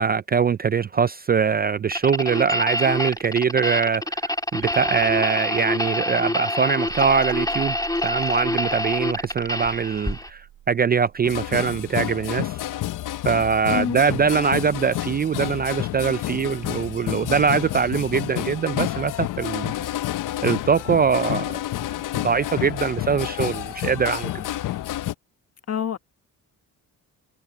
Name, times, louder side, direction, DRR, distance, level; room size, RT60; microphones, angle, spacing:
voice 1, 0.0-7.8 8.0-12.6 13.2-19.9 20.4-21.6 22.2-24.4, right 6 dB, 30° right, 0.4 m, -22 dB
sound 1, 1.9-10.3, left 1 dB, 10° left, 2.8 m, -26 dB
sound 2, 2.0-14.1, right 12 dB, 80° right, 6.6 m, -47 dB
sound 3, 11.2-25.1, left 14 dB, 65° left, 0.6 m, -29 dB
voice 2, 13.7-14.0 25.7-26.0, left 8 dB, 45° left, 1.2 m, -26 dB
cardioid pair, 95°, 34 cm